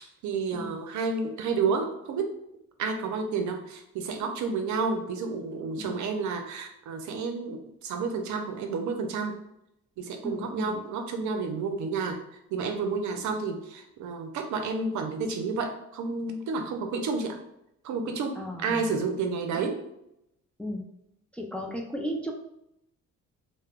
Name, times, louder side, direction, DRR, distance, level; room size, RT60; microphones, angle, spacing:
voice 1, 0.0-2.3 2.8-9.3 10.0-17.4 17.8-19.8, right 4 dB, 75° right, 5 dB, 0.5 m, -30 dB
voice 2, 10.2-10.8 13.2-13.3 18.4-18.9 20.6-20.8 21.3-22.3, equal, 5° left, 1 dB, 0.3 m, -35 dB
2.2 x 2.0 x 3.5 m, 0.81 s
cardioid pair, 90°, 30 cm